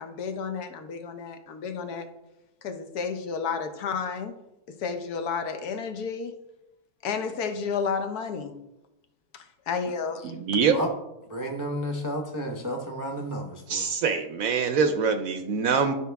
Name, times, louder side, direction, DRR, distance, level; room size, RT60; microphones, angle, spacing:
voice 1, 0.0-2.1 2.6-4.3 4.8-6.3 7.0-8.5 9.3-10.3, left 5 dB, 70° left, 7 dB, 1.2 m, -31 dB
voice 2, 10.2-10.7 13.7-15.9, right 6 dB, 70° right, 8 dB, 0.9 m, -24 dB
voice 3, 11.3-13.9, equal, 20° right, 1 dB, 0.5 m, -32 dB
11.5 x 4.6 x 3.4 m, 0.91 s
omnidirectional pair, 1.8 m